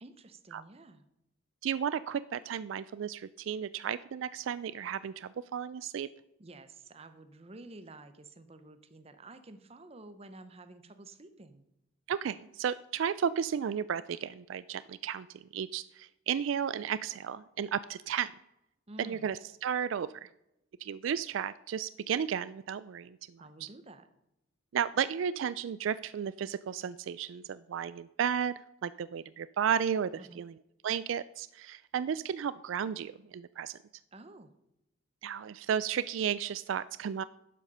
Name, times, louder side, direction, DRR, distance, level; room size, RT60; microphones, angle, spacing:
voice 1, 0.0-1.1 6.4-11.6 18.9-19.3 23.4-24.1 30.2-30.4 34.1-34.5, right 2 dB, 30° right, 10 dB, 0.8 m, -51 dB
voice 2, 1.6-6.1 12.1-18.3 19.0-20.3 20.8-23.7 24.7-30.5 30.8-33.7 35.2-37.2, right 8 dB, 75° right, 16 dB, 0.3 m, -33 dB
11.5 x 7.6 x 5.5 m, 0.86 s
head